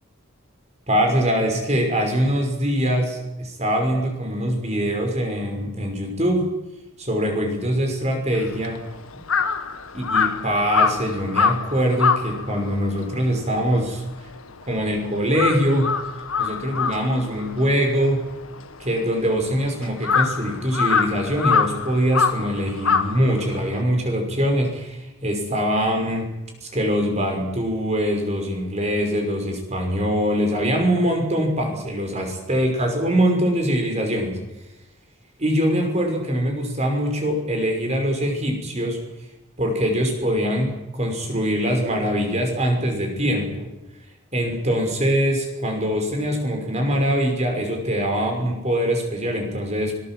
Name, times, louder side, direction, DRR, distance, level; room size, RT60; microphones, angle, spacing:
voice 1, 0.9-6.5 7.0-8.8 9.9-14.3 14.7-15.9 16.4-18.3 18.8-26.3 26.6-34.4 35.4-39.0 39.6-43.7 44.3-50.0, equal, 30° right, 3 dB, 5.6 m, -23 dB
Crow, 8.3-14.9 15.2-23.8, left 5 dB, 80° left, 1.6 m, -24 dB
24.5 x 19.5 x 7.7 m, 0.98 s
head